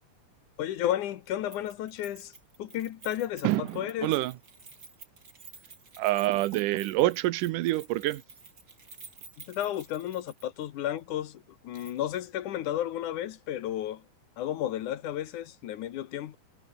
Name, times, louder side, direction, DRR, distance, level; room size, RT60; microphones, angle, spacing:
voice 1, 0.6-2.3 2.6-4.2 9.4-14.0 14.4-16.4, left 12 dB, 75° left, 2.7 m, -33 dB
Keys jangling, 1.5-10.7 11.0-11.1 11.7-12.3 12.6-12.7, right 4 dB, 30° right, 3.5 m, -51 dB
voice 2, 3.4-4.3 6.0-8.2, right 16 dB, 90° right, 2.4 m, -27 dB
omnidirectional pair, 3.7 m